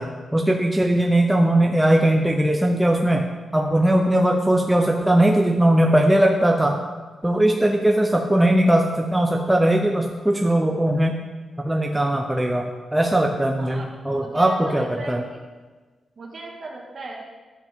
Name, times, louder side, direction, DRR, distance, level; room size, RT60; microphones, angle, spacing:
voice 1, 0.0-3.3 3.5-6.8 7.2-11.1 11.6-15.2, right 1 dB, 5° right, 1 dB, 0.6 m, -19 dB
voice 2, 13.6-15.4 16.2-17.2, right 3 dB, 45° right, -1 dB, 1.8 m, -36 dB
11.0 x 7.4 x 3.6 m, 1.3 s
wide cardioid pair, 130°, 0 cm